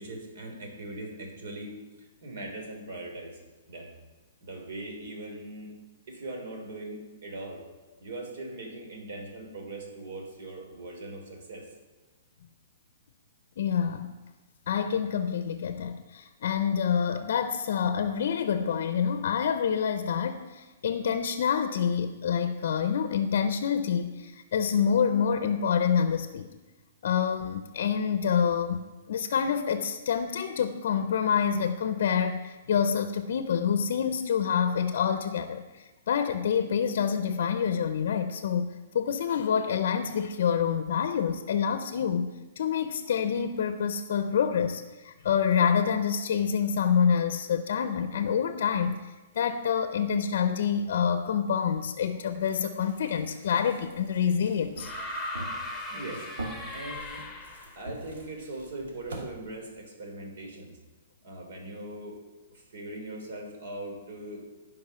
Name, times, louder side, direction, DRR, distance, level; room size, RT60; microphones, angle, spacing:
voice 1, 0.0-3.4 3.7-3.9 4.4-5.8 6.1-7.6 8.0-11.7 55.9-56.3 56.7-57.3 57.7-60.8 61.2-62.2 62.5-64.4, right 2 dB, 65° right, 2 dB, 3.6 m, -40 dB
voice 2, 13.6-14.2 14.7-26.5 27.0-54.9, left 7 dB, 60° left, 9 dB, 0.7 m, -27 dB
sound 1, 52.3-59.2, right 2 dB, 85° right, 2.6 m, -44 dB
sound 2, 54.8-57.8 59.1-59.2, left 1 dB, 5° left, 1.2 m, -38 dB
16.5 x 5.5 x 5.6 m, 1.2 s
hypercardioid pair, 165°, 0 cm